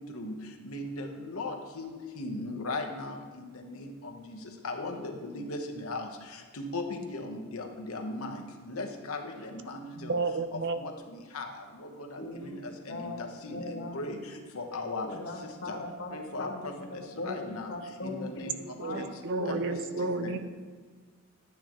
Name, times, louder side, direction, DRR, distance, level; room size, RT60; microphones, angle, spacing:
voice 1, 0.7-1.9 2.2-3.2 4.6-6.1 6.6-8.4 8.7-9.3 9.6-10.1 10.8-10.9 11.3-11.5 12.5-12.6 13.0-13.1 13.4-13.6 13.9-14.2 14.5-15.1 15.7-15.8 16.1-16.5 17.2-17.7 18.0-18.6 19.0-19.1 19.5-19.7 20.2-20.4, left 2 dB, 75° left, 4 dB, 1.1 m, -36 dB
voice 2, 10.0-10.8 18.8-20.4, right 3 dB, 50° right, 10 dB, 0.5 m, -31 dB
voice 3, 12.2-12.6 12.9-14.1 15.0-16.1 16.4-19.0 19.3-19.6 19.9-20.1, left 2 dB, 55° left, 2 dB, 1.2 m, -39 dB
10.5 x 9.3 x 3.1 m, 1.5 s
head